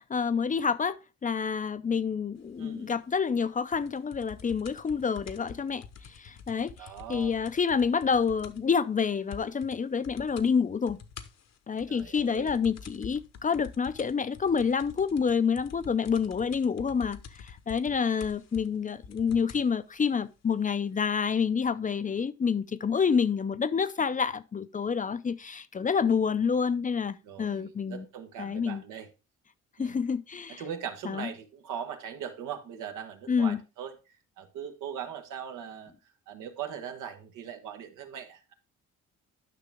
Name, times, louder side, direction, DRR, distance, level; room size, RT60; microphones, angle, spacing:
voice 1, 0.0-11.0 11.7-28.1 28.4-28.8 29.8-30.6 31.0-31.3 33.3-33.6, left 6 dB, 25° left, 0.5 m, -28 dB
voice 2, 2.6-2.9 6.8-7.3 11.9-12.5 27.2-29.1 29.8-30.0 30.5-33.9 34.4-35.9 36.3-38.5, right 8 dB, 90° right, 1.3 m, -40 dB
sound 1, 3.7-8.7 9.0-9.1 9.3-9.8 10.0-10.5 10.9-19.7 20.5-20.6, left 6 dB, 60° left, 1.0 m, -47 dB
9.9 x 5.9 x 3.5 m
cardioid pair, 90°, 30 cm